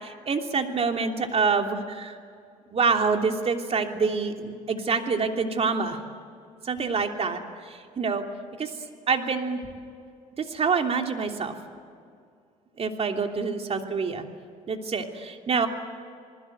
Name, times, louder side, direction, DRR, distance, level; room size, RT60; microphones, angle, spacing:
voice 1, 0.0-2.2 2.7-6.0 6.6-8.2 8.6-8.7 9.1-9.6 10.4-11.5 12.8-14.2 14.7-15.7, right 5 dB, 40° right, 4 dB, 3.0 m, -26 dB
28.0 x 20.5 x 8.0 m, 2.3 s
supercardioid pair, 80°, 16 cm